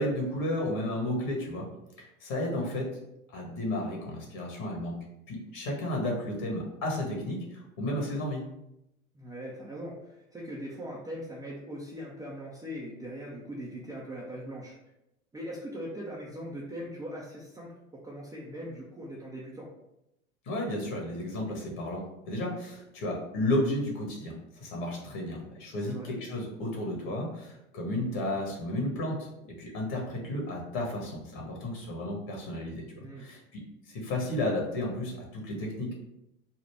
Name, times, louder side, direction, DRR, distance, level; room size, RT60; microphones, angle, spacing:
voice 1, 0.0-1.7 2.2-2.9 3.3-4.9 5.3-7.4 7.8-8.4 20.4-33.4 33.9-35.9, left 1 dB, 45° left, -1 dB, 1.5 m, -32 dB
voice 2, 9.1-14.7 15.3-19.7 25.9-26.1 33.0-33.3, equal, 10° right, -5 dB, 0.6 m, -40 dB
4.3 x 2.3 x 4.5 m, 0.85 s
figure-of-eight pair, 90°, 44 cm